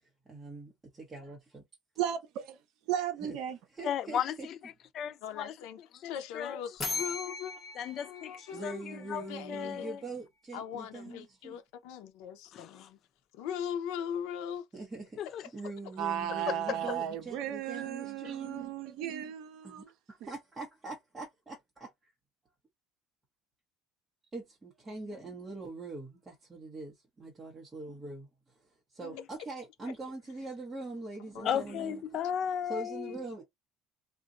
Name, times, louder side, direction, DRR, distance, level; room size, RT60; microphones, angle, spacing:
voice 1, 0.3-1.6 3.2-3.4 3.7-4.5 8.5-11.6 14.7-15.2 15.5-18.7 19.6-21.9 24.3-28.3 28.9-32.3 32.6-33.4, right 2 dB, 10° right, 0.8 m, -43 dB
voice 2, 2.0-2.6 2.9-3.6 16.0-19.9, right 10 dB, 55° right, 0.6 m, -35 dB
voice 3, 3.8-5.5 6.0-6.6 7.8-10.0 12.5-12.9 15.2-15.4 16.5-16.8 29.0-29.2 31.4-33.2, left 9 dB, 35° left, 0.3 m, -35 dB
voice 4, 5.2-9.9 10.5-13.0 13.3-14.7 31.3-31.8, left 8 dB, 75° left, 0.7 m, -40 dB
sound 1, 6.8-9.6, left 4 dB, 15° left, 1.0 m, -39 dB
2.6 x 2.1 x 3.7 m
cardioid pair, 180°, 0 cm